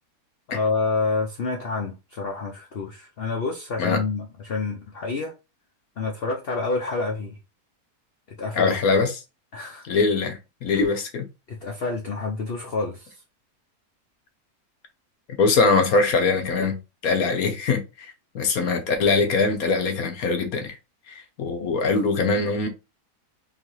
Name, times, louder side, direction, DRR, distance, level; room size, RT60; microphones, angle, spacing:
voice 1, 0.5-5.3 6.0-7.4 8.3-8.8 9.5-9.9 11.5-13.2 21.6-21.7, left 3 dB, 50° left, 0.8 m, -28 dB
voice 2, 8.5-9.1 9.9-11.3 15.4-16.8 17.0-20.8 21.1-22.7, left 4 dB, 70° left, 1.4 m, -22 dB
3.9 x 3.2 x 3.1 m
omnidirectional pair, 1.6 m